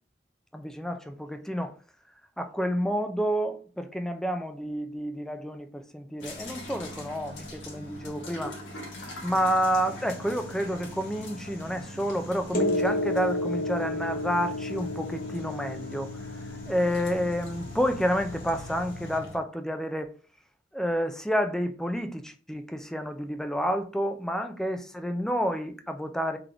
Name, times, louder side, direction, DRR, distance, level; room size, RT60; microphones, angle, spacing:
voice 1, 0.5-1.7 2.4-8.6 9.2-20.1 20.7-26.4, equal, 5° left, 0.4 m, -29 dB
sound 1, 6.2-19.4, left 1 dB, 90° left, 1.3 m, -42 dB
sound 2, 9.2-19.2, left 2 dB, 50° left, 0.9 m, -34 dB
3.7 x 3.5 x 3.4 m
head